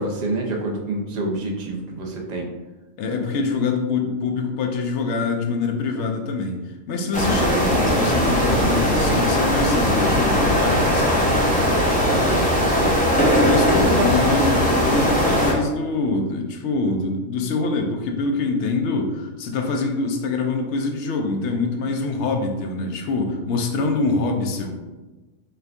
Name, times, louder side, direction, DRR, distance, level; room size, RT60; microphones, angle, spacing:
voice 1, 0.0-2.5 11.9-13.4 14.0-14.1, right 2 dB, 45° right, 0 dB, 0.5 m, -27 dB
voice 2, 3.0-6.6 6.9-11.4 13.4-24.8, left 3 dB, 70° left, 3 dB, 0.8 m, -24 dB
sound 1, 7.1-15.5, equal, 10° left, 0.5 m, -19 dB
4.4 x 2.5 x 3.3 m, 1.2 s
omnidirectional pair, 1.4 m